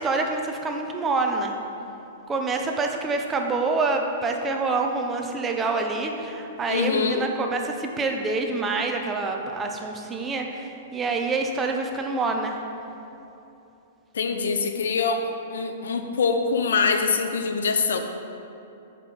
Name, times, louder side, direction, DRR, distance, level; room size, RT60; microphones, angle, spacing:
voice 1, 0.0-1.6 2.3-12.6, right 3 dB, 15° right, 3 dB, 0.6 m, -26 dB
voice 2, 6.7-7.3 14.1-18.0, left 5 dB, 85° left, 6 dB, 0.7 m, -24 dB
6.8 x 5.9 x 4.8 m, 2.8 s
hypercardioid pair, 160°, 0 cm